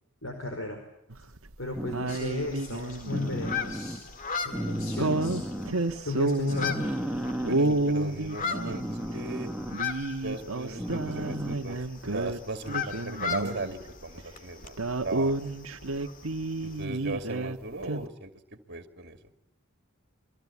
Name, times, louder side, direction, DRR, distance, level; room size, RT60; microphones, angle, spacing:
voice 1, 0.2-0.8 1.6-5.4 6.0-6.8, left 2 dB, 65° left, 4 dB, 4.9 m, -35 dB
sound 1, 1.1-1.5 1.9-3.7 5.0-6.9 7.4-9.2 9.7-12.4 12.7-13.9 14.2-14.3 14.6-17.6 17.8-18.1, right 2 dB, 75° right, 1.4 m, -30 dB
sound 2, 1.8-2.2 3.1-4.0 4.5-5.7 6.5-7.6 8.5-9.8 10.8-11.7 13.6-13.7, equal, 5° right, 1.8 m, -34 dB
sound 3, 2.1-16.8, left 7 dB, 40° left, 2.1 m, -39 dB
voice 2, 7.4-9.5 10.2-15.5 16.6-19.2, right 2 dB, 50° right, 7 dB, 2.5 m, -38 dB
28.5 x 23.5 x 8.5 m, 0.78 s
head